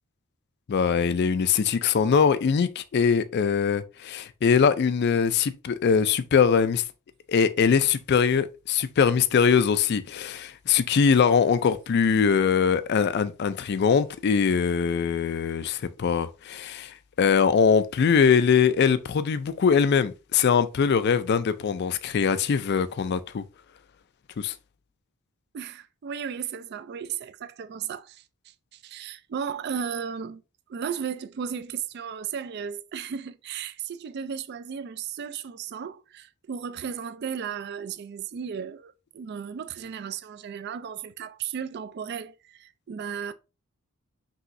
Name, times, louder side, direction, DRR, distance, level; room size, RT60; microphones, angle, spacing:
voice 1, 0.7-6.8 7.3-23.4 24.4-24.5, left 6 dB, 50° left, 0.3 m, -22 dB
voice 2, 25.5-30.4 30.7-43.3, right 7 dB, 50° right, 0.3 m, -35 dB
5.5 x 3.0 x 2.6 m
head